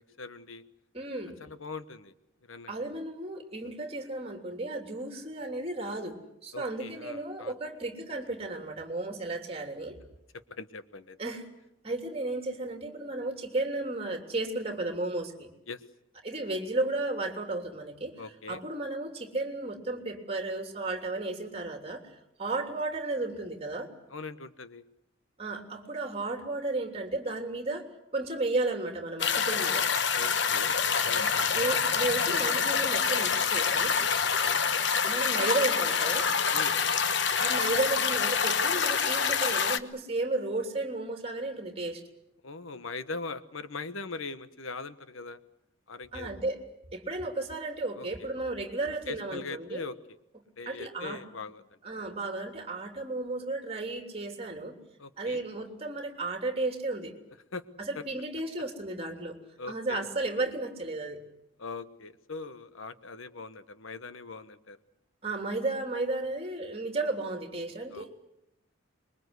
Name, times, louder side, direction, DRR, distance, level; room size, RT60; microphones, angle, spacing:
voice 1, 0.2-0.6 1.4-2.1 2.5-2.7 6.5-7.5 10.5-11.2 15.7-15.8 18.2-18.6 24.1-24.8 30.1-31.6 34.4-34.6 36.5-36.8 42.4-45.4 45.9-46.3 48.0-48.3 49.1-50.0 50.6-51.8 55.0-55.4 57.5-57.6 57.9-58.0 59.6-60.1 61.6-64.8 67.9-68.1, left 4 dB, 80° left, 12 dB, 1.2 m, -41 dB
voice 2, 0.9-1.4 2.7-10.0 11.2-11.5 11.8-15.5 16.2-18.1 18.5-22.1 22.4-23.9 25.4-27.8 28.1-29.9 31.2-33.9 35.0-36.3 37.4-42.0 46.1-46.6 46.9-49.8 50.6-51.2 51.8-54.8 55.2-57.1 57.9-59.4 59.7-61.2 65.2-68.1, right 2 dB, 30° right, 5 dB, 3.2 m, -33 dB
sound 1, 29.2-39.8, left 6 dB, 60° left, 1.1 m, -26 dB
25.5 x 22.5 x 8.2 m, 0.84 s
head